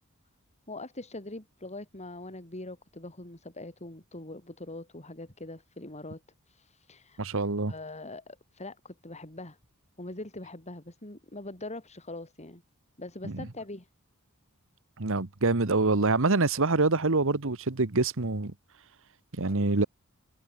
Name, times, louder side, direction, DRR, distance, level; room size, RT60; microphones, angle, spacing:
voice 1, 0.7-6.2 6.5-7.2 7.7-9.6 10.0-12.6 13.0-13.9 19.4-19.7, left 2 dB, 30° left, 5.2 m, -42 dB
voice 2, 7.2-7.7 13.2-13.3 15.0-18.5 19.4-19.9, right 3 dB, 65° right, 1.4 m, -25 dB
head